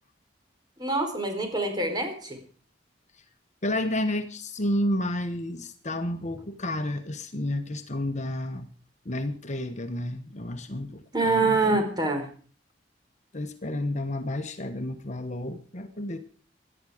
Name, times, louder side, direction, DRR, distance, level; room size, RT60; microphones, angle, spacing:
voice 1, 0.8-2.4 11.1-12.3, right 3 dB, 25° right, 4.6 m, -25 dB
voice 2, 3.6-8.7 9.0-11.8 13.3-16.3, left 1 dB, 40° left, 1.1 m, -31 dB
18.0 x 12.0 x 5.0 m
head